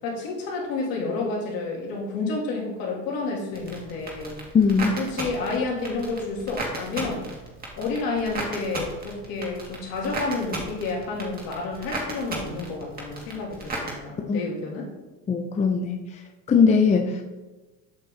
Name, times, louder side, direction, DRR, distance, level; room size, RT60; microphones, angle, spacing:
voice 1, 0.0-4.3 5.0-7.2 7.8-14.9, left 3 dB, 60° left, -2 dB, 2.8 m, -30 dB
sound 1, 3.5-13.9, right 2 dB, 20° right, 2.3 m, -35 dB
voice 2, 4.5-5.0 14.3-14.4 15.3-16.2 16.5-17.2, left 5 dB, 20° left, 4 dB, 0.6 m, -20 dB
7.7 x 6.8 x 3.7 m, 1.2 s
supercardioid pair, 120°, 40 cm